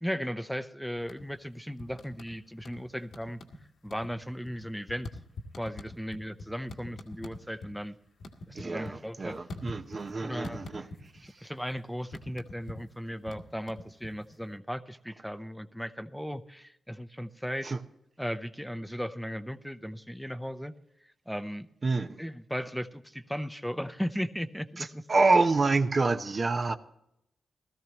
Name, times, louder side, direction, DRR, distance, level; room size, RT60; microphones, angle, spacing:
voice 1, 0.0-3.4 3.8-5.1 5.6-7.9 8.5-9.4 10.2-10.6 11.2-17.7 18.2-20.7 21.3-21.7 22.2-25.0, equal, ahead, 0.8 m, -36 dB
sound 1, 1.0-1.5 1.8-2.8 3.1-3.6 3.9-7.7 8.0-10.1 10.4-11.3 11.6-14.4, left 2 dB, 80° left, 1.7 m, -44 dB
voice 2, 8.5-10.9 17.6-17.8 21.8-22.2 24.8-26.8, right 3 dB, 50° right, 1.0 m, -27 dB
17.5 x 13.5 x 3.0 m
cardioid pair, 50°, 0 cm